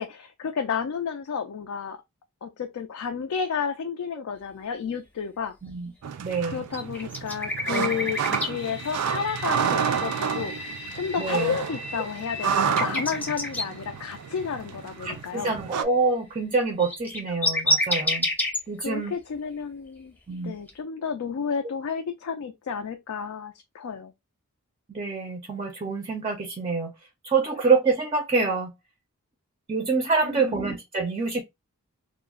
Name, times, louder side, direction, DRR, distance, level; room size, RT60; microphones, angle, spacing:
voice 1, 0.0-2.0 2.4-5.6 6.5-15.6 18.8-20.1 20.4-24.1 30.2-30.7, left 6 dB, 70° left, 0.3 m, -31 dB
sound 1, 6.0-15.8, right 7 dB, 85° right, 0.3 m, -30 dB
voice 2, 6.2-6.6 11.2-11.6 15.0-18.3 18.7-19.1 20.3-20.5 24.9-26.9 27.2-28.7 29.7-31.4, right 4 dB, 25° right, 0.4 m, -26 dB
sound 2, 6.7-8.5 10.5-13.6 16.5-16.6 16.8-18.6 20.7-20.8, left 1 dB, 5° left, 0.7 m, -28 dB
sound 3, 7.6-17.3, left 1 dB, 90° left, 0.8 m, -43 dB
2.3 x 2.0 x 3.4 m
head